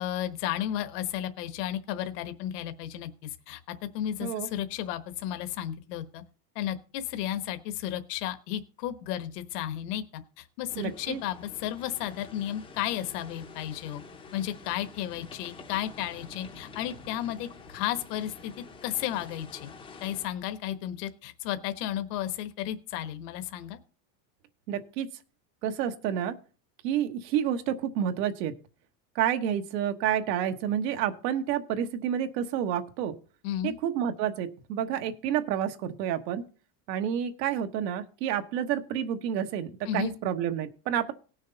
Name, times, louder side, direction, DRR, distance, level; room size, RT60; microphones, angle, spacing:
voice 1, 0.0-3.6 3.9-6.2 6.5-10.0 10.4-14.0 14.3-18.5 18.8-19.7 20.0-23.8 33.4-33.8 39.9-40.1, left 11 dB, 75° left, 10 dB, 1.2 m, -33 dB
sound 1, 10.7-20.3, left 4 dB, 10° left, 0.5 m, -48 dB
voice 2, 10.8-11.2 24.7-25.1 25.6-26.4 26.8-28.5 29.1-33.2 33.6-36.4 36.9-41.1, right 9 dB, 85° right, 7 dB, 1.4 m, -29 dB
18.5 x 6.4 x 4.0 m, 0.37 s
cardioid pair, 170°, 48 cm